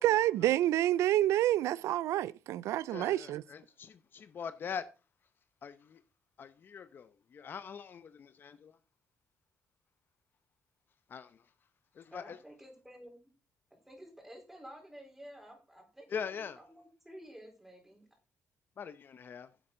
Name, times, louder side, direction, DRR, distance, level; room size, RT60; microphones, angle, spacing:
voice 1, 0.0-3.4, right 14 dB, 90° right, 0.4 m, -28 dB
voice 2, 2.9-4.8 5.6-6.0 6.4-8.8 11.1-11.5 11.9-12.4 16.1-16.6 18.8-19.5, left 7 dB, 45° left, 0.7 m, -43 dB
voice 3, 12.1-13.3 13.7-18.1, equal, 5° right, 3.8 m, -52 dB
10.0 x 7.6 x 3.8 m
cardioid pair, 125°, 5 cm